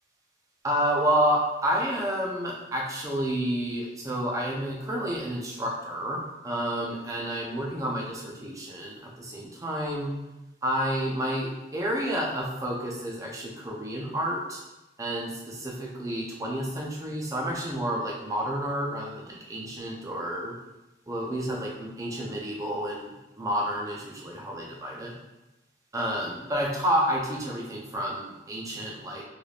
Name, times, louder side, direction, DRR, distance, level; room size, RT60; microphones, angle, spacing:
voice 1, 0.6-6.2 6.4-10.1 10.6-14.6 15.0-20.5 21.1-23.1 23.4-25.1 25.9-29.2, equal, 20° right, -2 dB, 0.5 m, -30 dB
3.2 x 2.5 x 2.4 m, 0.99 s
head